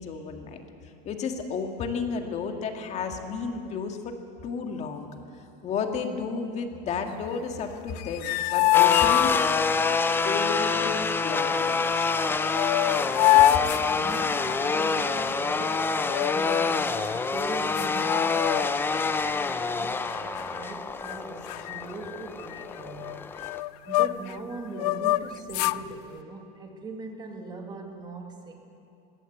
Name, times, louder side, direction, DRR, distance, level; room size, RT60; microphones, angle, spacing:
voice 1, 0.0-4.2 4.4-5.1 5.3-9.3 10.2-12.2, left 5 dB, 35° left, 5 dB, 1.9 m, -33 dB
sound 1, 7.9-9.9 12.1-12.2 12.5-14.7 16.0-16.8 17.4-17.5 17.8-18.9 19.2-19.5 20.1-20.7 21.0-21.2 21.5-24.4 24.7-25.8, left 16 dB, 75° left, 0.6 m, -25 dB
sound 2, 8.7-23.6, left 4 dB, 10° left, 0.6 m, -27 dB
voice 2, 13.0-23.1 23.9-28.6, right 3 dB, 20° right, 3 dB, 2.0 m, -41 dB
20.5 x 16.5 x 8.0 m, 2.6 s
supercardioid pair, 150°, 21 cm